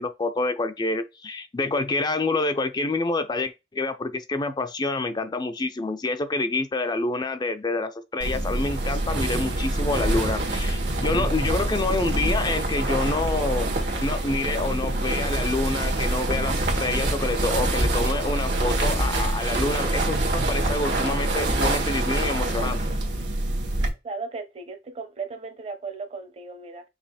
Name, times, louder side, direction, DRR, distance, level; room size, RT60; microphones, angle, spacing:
voice 1, 0.0-13.7 14.0-22.8, left 3 dB, 25° left, 0.4 m, -27 dB
sound 1, 8.2-23.9, right 1 dB, 70° right, 1.4 m, -25 dB
voice 2, 24.0-26.8, right 4 dB, 35° right, 0.9 m, -36 dB
5.4 x 2.4 x 4.1 m
head